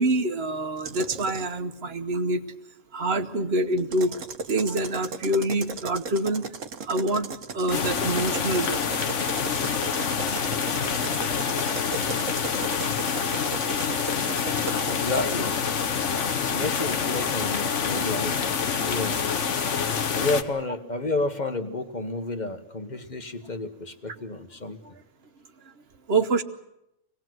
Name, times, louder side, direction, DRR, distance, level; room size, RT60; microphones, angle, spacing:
voice 1, 0.0-2.4 2.9-6.4 6.8-8.8 12.1-12.6 14.1-14.3 16.0-16.2 26.1-26.4, right 2 dB, 55° right, 10 dB, 1.3 m, -26 dB
sound 1, 0.8-1.5 3.8-15.0, right 5 dB, 80° right, 1.4 m, -37 dB
sound 2, 7.7-20.4, left 6 dB, 65° left, 1.4 m, -27 dB
voice 2, 14.8-15.5 16.1-24.8, left 2 dB, 35° left, 7 dB, 1.5 m, -31 dB
25.5 x 19.0 x 7.8 m, 0.85 s
omnidirectional pair, 1.3 m